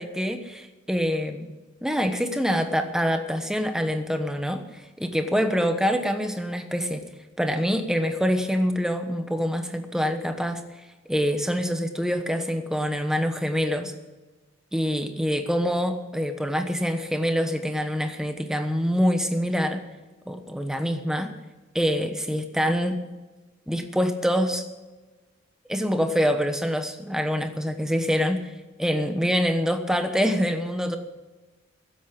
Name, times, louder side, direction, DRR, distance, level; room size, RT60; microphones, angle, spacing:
voice 1, 0.0-1.5 1.8-7.0 7.4-10.6 11.1-13.9 14.7-19.8 20.3-21.3 21.7-23.0 23.7-24.6 25.7-28.4 28.8-31.0, equal, 5° right, 6 dB, 1.1 m, -25 dB
15.0 x 8.4 x 8.6 m, 1.2 s
head